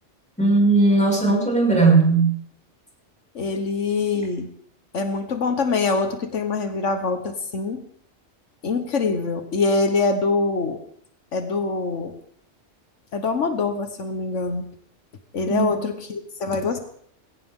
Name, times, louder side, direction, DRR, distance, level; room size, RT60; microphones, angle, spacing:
voice 1, 0.4-2.3 15.5-15.7, right 3 dB, 5° left, -2 dB, 6.1 m, -17 dB
voice 2, 3.3-4.5 4.9-7.8 8.6-10.8 11.3-12.1 13.1-14.7 15.3-16.8, left 4 dB, 80° left, 7 dB, 1.6 m, -24 dB
20.0 x 17.0 x 3.8 m, 0.64 s
omnidirectional pair, 1.2 m